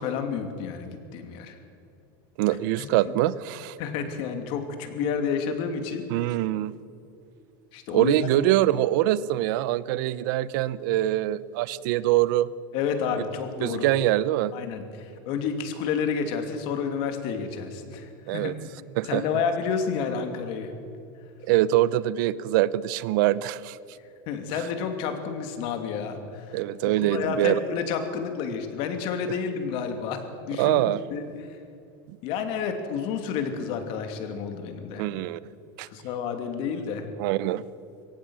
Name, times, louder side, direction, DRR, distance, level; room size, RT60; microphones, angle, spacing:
voice 1, 0.0-1.6 2.8-2.9 3.8-6.0 7.7-8.3 12.7-13.9 14.5-18.5 19.0-20.8 24.3-26.6 27.0-30.2 30.5-31.3 32.2-35.1 35.9-37.1, left 6 dB, 50° left, 6 dB, 2.7 m, -30 dB
voice 2, 2.4-3.8 6.1-6.7 7.9-12.5 13.6-14.5 18.3-18.5 19.0-19.2 21.4-23.8 26.5-27.6 30.6-31.0 32.1-32.2 35.0-35.4 35.8-35.9 37.2-37.6, right 14 dB, 65° right, 18 dB, 0.7 m, -24 dB
23.0 x 18.0 x 6.4 m, 2.6 s
supercardioid pair, 160°, 11 cm